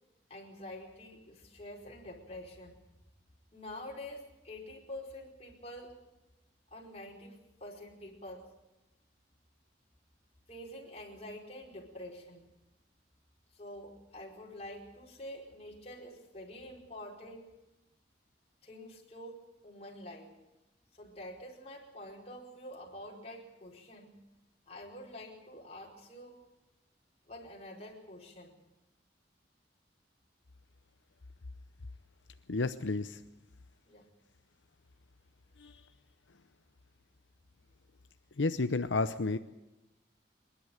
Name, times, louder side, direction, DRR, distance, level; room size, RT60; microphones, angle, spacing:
voice 1, 0.3-2.8 3.5-6.0 6.7-8.5 10.5-12.4 13.5-17.5 18.6-20.3 20.9-24.1 24.7-26.4 27.3-28.5 33.9-34.1, left 1 dB, 35° left, -2 dB, 4.8 m, -47 dB
voice 2, 32.5-33.2 35.6-35.7 38.4-39.4, left 3 dB, 90° left, 10 dB, 0.8 m, -31 dB
27.0 x 11.5 x 9.2 m, 0.98 s
head